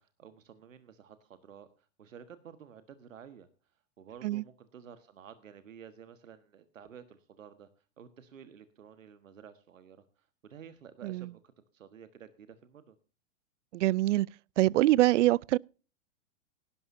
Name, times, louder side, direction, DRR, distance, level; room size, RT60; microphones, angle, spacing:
voice 1, 0.0-3.5 4.0-7.7 8.0-11.4 11.7-13.0, right 8 dB, 85° right, 1.4 m, -52 dB
voice 2, 13.7-14.3 14.6-15.6, right 16 dB, 70° right, 0.5 m, -24 dB
18.0 x 11.5 x 2.6 m
hypercardioid pair, 110°, 38 cm